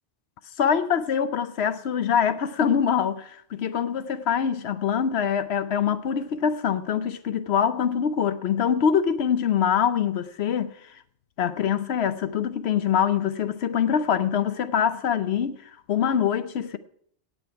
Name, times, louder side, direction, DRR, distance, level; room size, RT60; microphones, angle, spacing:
voice 1, 0.6-10.7 11.4-15.6 15.9-16.8, left 8 dB, 65° left, 0.9 m, -24 dB
17.0 x 7.7 x 4.6 m
omnidirectional pair, 1.3 m